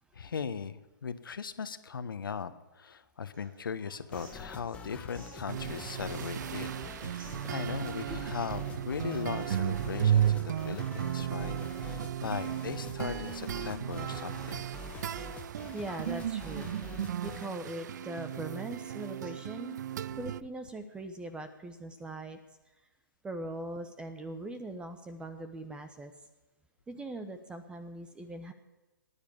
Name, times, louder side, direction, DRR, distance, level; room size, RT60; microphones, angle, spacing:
voice 1, 0.1-6.7 7.0-11.5 11.8-14.7, left 6 dB, 75° left, 11 dB, 1.2 m, -38 dB
sound 1, 3.3-19.3, right 3 dB, 75° right, 3.2 m, -56 dB
sound 2, 4.1-17.5, left 3 dB, 10° left, 1.2 m, -46 dB
sound 3, 5.5-20.4, right 10 dB, 55° right, 0.4 m, -34 dB
voice 2, 15.7-16.7 17.2-19.8 20.2-22.4 23.2-26.1 26.9-28.5, right 2 dB, 10° right, 9 dB, 0.9 m, -41 dB
18.0 x 10.5 x 7.3 m, 1.1 s
hypercardioid pair, 135°, 12 cm